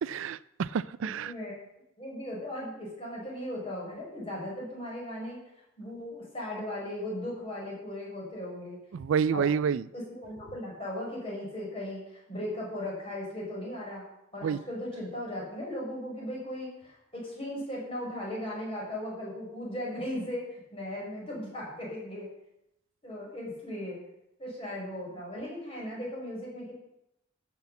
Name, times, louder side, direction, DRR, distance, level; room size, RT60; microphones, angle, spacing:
voice 1, 0.0-1.3 8.9-9.8 14.4-14.6, right 7 dB, 75° right, 19 dB, 0.4 m, -28 dB
voice 2, 1.0-1.5 2.0-5.4 5.8-8.8 9.3-14.0 14.3-22.3 23.0-24.0 24.4-26.7, left 1 dB, 25° left, -4 dB, 5.1 m, -37 dB
14.0 x 6.1 x 7.0 m, 0.83 s
head